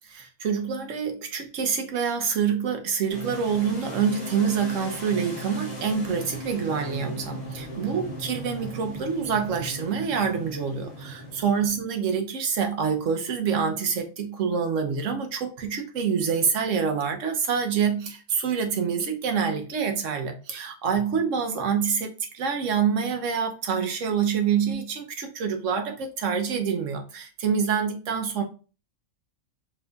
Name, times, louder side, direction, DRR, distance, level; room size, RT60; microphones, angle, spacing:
voice 1, 0.1-28.4, right 6 dB, 75° right, 1.1 m, -26 dB
sound 1, 3.1-11.7, equal, 35° left, 1.7 m, -38 dB
4.7 x 3.8 x 2.3 m
omnidirectional pair, 1.3 m